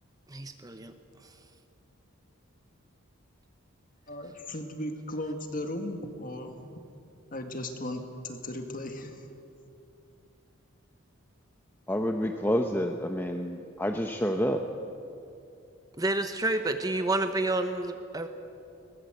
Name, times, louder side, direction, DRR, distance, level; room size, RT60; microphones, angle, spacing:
voice 1, 0.3-0.9 16.0-18.3, right 2 dB, 15° right, 8 dB, 0.8 m, -29 dB
voice 2, 4.1-6.8 7.3-9.3, left 1 dB, 40° left, 5 dB, 1.9 m, -36 dB
voice 3, 11.9-14.6, equal, 10° left, 4 dB, 0.8 m, -28 dB
21.5 x 19.5 x 8.0 m, 2.7 s
head